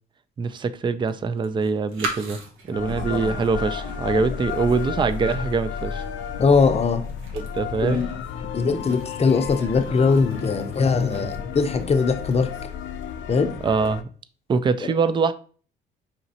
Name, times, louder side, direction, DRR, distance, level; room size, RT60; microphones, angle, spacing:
voice 1, 0.4-2.4 2.7-6.0 7.3-8.1 13.6-14.1 14.5-15.3, right 4 dB, 25° right, 0.3 m, -24 dB
sound 1, 1.1-12.8, right 2 dB, 85° right, 0.9 m, -39 dB
sound 2, 2.7-14.0, left 7 dB, 75° left, 0.5 m, -32 dB
voice 2, 6.4-7.1 7.8-8.1 8.5-12.5 13.3-13.5 14.8-14.9, left 4 dB, 30° left, 0.6 m, -21 dB
5.2 x 2.9 x 2.8 m
cardioid pair, 90°, 20 cm